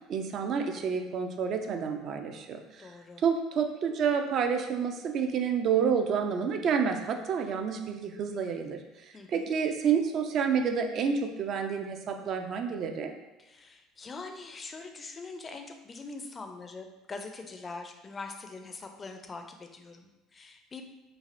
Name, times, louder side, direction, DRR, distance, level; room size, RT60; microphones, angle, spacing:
voice 1, 0.1-2.9 3.2-8.8 9.3-13.1, right 6 dB, 50° right, 5 dB, 0.3 m, -29 dB
voice 2, 2.8-3.2 9.1-9.5 13.4-20.8, left 3 dB, 30° left, 5 dB, 0.4 m, -43 dB
3.2 x 2.5 x 2.5 m, 1.1 s
hypercardioid pair, 65°, 0 cm